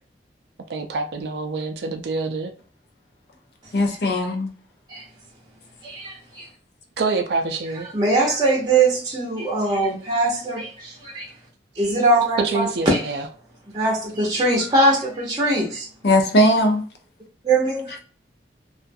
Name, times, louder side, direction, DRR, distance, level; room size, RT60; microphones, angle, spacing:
voice 1, 0.7-2.5 7.0-7.9 12.4-13.2, right 3 dB, 70° right, 0.4 m, -26 dB
voice 2, 3.7-4.5 16.0-16.8, left 1 dB, 65° left, 0.6 m, -18 dB
voice 3, 5.8-6.5 7.9-11.3 11.8-13.0 13.7-15.9 17.4-18.0, right 2 dB, 25° right, 0.7 m, -21 dB
2.4 x 2.2 x 2.6 m
head